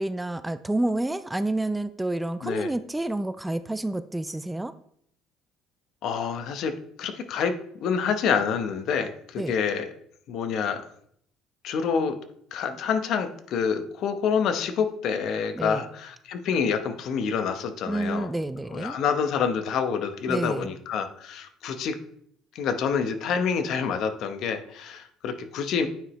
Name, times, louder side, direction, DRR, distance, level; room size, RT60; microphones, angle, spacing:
voice 1, 0.0-4.7 9.4-9.5 15.6-15.8 17.9-19.0 20.3-20.7, right 1 dB, 10° right, 12 dB, 0.3 m, -29 dB
voice 2, 6.0-6.7 7.0-7.5 7.8-9.9 10.3-10.9 11.6-12.2 12.5-18.3 18.7-22.0 22.5-25.9, left 6 dB, 65° left, 8 dB, 0.8 m, -27 dB
9.0 x 4.9 x 3.1 m, 0.66 s
cardioid pair, 110°, 0 cm